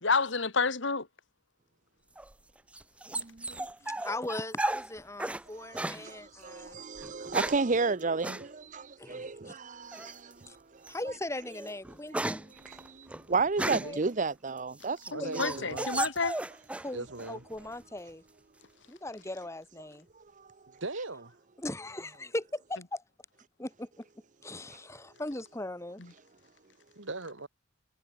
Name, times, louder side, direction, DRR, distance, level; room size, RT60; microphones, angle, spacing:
voice 1, 0.0-1.1 15.1-16.3, left 4 dB, 65° left, 1.9 m, -29 dB
sound 1, 2.2-5.4 5.7-6.0 7.0-7.7 8.2-8.4 9.9-10.3 10.8-11.0 11.4-14.0 14.6-16.9 17.2-17.8, right 2 dB, 5° right, 0.3 m, -35 dB
voice 2, 3.1-3.7 5.6-10.9 12.5-15.7 20.2-20.5, right 4 dB, 40° right, 0.7 m, -33 dB
voice 3, 3.8-6.7 9.0-9.5 10.5-10.6 10.9-12.4 13.6-14.0 15.2-15.9 16.8-18.2 18.9-20.1 21.6-23.0 23.6-24.0 24.4-26.0, left 1 dB, 15° left, 1.6 m, -39 dB
voice 4, 13.6-14.0 15.1-16.1 16.9-17.4 20.8-21.3 27.0-27.5, right 2 dB, 70° right, 2.4 m, -39 dB
head